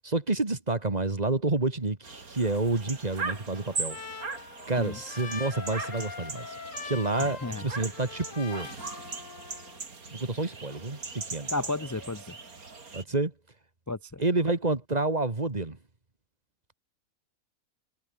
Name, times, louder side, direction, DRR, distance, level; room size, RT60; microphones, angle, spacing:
voice 1, 0.0-4.0 4.7-6.6 6.8-8.7 10.1-11.5 12.9-13.3 14.2-15.8, right 2 dB, 30° right, 2.1 m, -29 dB
sound 1, 2.0-13.0, right 4 dB, 80° right, 3.4 m, -39 dB
Trumpet, 3.1-9.8, left 5 dB, 60° left, 2.1 m, -43 dB
voice 2, 7.2-7.6 11.5-12.3 13.9-14.2, left 2 dB, 20° left, 0.5 m, -33 dB
omnidirectional pair, 1.5 m